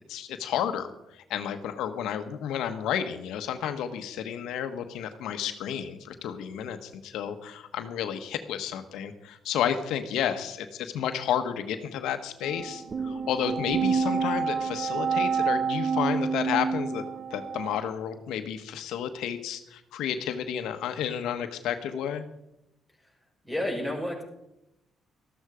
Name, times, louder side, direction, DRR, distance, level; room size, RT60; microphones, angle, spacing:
voice 1, 0.1-17.0 17.3-22.2, left 9 dB, 85° left, 8 dB, 1.1 m, -31 dB
sound 1, 12.4-17.8, right 5 dB, 45° right, 1.0 m, -28 dB
voice 2, 23.4-24.2, left 1 dB, 5° right, -1 dB, 5.9 m, -30 dB
13.5 x 12.5 x 5.0 m, 0.85 s
cardioid pair, 90°, 0 cm